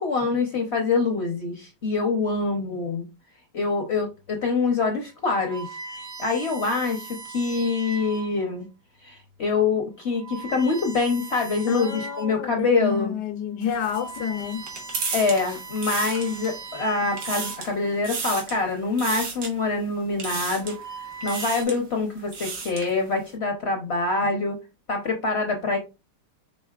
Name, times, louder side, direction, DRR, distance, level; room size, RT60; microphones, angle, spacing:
voice 1, 0.0-3.1 3.5-8.7 9.0-13.1 15.1-24.6 24.9-25.8, left 3 dB, 50° left, 0.8 m, -25 dB
sound 1, 4.3-4.5 5.2-8.6 9.2-9.5 10.0-12.5 12.9-13.0 13.6-18.0 19.0-19.4 20.3-21.6, right 4 dB, 55° right, 0.4 m, -40 dB
voice 2, 11.7-14.6, left 9 dB, 75° left, 1.3 m, -29 dB
sound 2, 13.6-16.7 17.0-17.7 18.0-18.6 19.0-19.5 20.2-20.8 21.2-21.8 22.2-22.9, right 4 dB, 90° right, 1.9 m, -33 dB
5.5 x 3.8 x 2.3 m
omnidirectional pair, 1.9 m